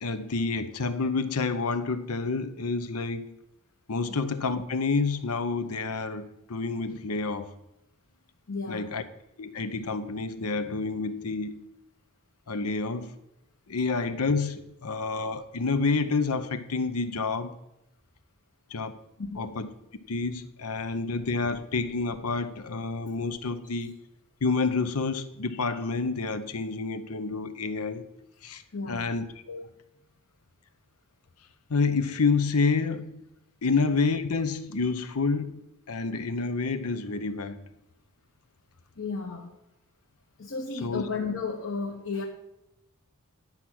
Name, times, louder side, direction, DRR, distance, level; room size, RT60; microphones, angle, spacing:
voice 1, 0.0-3.4 3.9-7.5 8.7-9.0 9.4-11.6 12.5-13.1 13.7-17.5 18.7-18.9 19.4-19.7 20.1-23.9 24.4-28.0 28.4-28.6 28.9-29.7 31.7-33.2 33.6-37.6 40.8-41.0, left 4 dB, 85° left, 0.8 m, -29 dB
voice 2, 8.5-8.9 19.2-19.5 28.7-29.1 39.0-39.5 40.4-42.2, left 4 dB, 60° left, 1.2 m, -33 dB
10.5 x 5.8 x 6.2 m
head